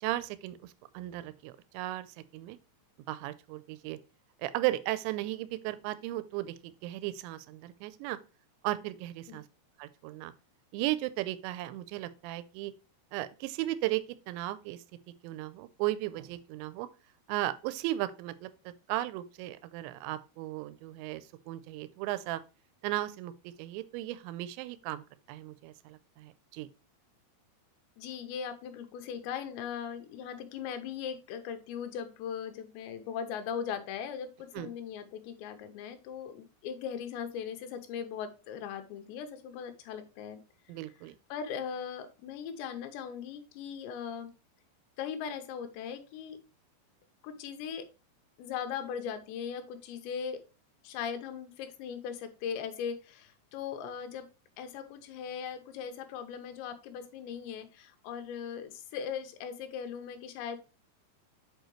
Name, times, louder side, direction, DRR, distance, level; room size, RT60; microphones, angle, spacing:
voice 1, 0.0-2.1 2.3-2.6 3.1-4.0 4.4-8.2 8.6-9.4 9.8-10.3 10.7-12.7 13.1-14.8 15.2-16.9 17.3-22.4 22.8-26.7 34.5-34.7 40.7-41.2, right 16 dB, 85° right, 2.8 m, -36 dB
voice 2, 28.0-40.4 41.3-44.3 45.0-46.4 47.2-47.9 48.4-50.4 50.8-54.3 54.6-60.6, left 7 dB, 80° left, 3.1 m, -39 dB
8.0 x 4.6 x 3.1 m
omnidirectional pair, 5.2 m